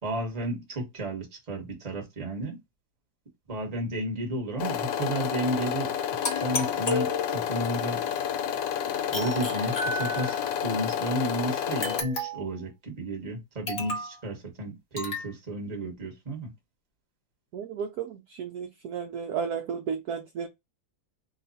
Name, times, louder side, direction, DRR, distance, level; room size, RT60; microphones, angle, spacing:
voice 1, 0.0-2.6 3.5-5.9 6.2-8.0 9.1-16.5, right 1 dB, 25° right, 1.0 m, -32 dB
sound 1, 4.6-12.0, left 9 dB, 75° left, 1.3 m, -30 dB
sound 2, 6.2-7.6 9.1-10.5 11.8-12.6 13.7-14.2 15.0-15.3, left 2 dB, 45° left, 0.7 m, -33 dB
voice 2, 17.5-20.5, right 6 dB, 75° right, 0.9 m, -33 dB
3.0 x 2.2 x 3.9 m
omnidirectional pair, 2.1 m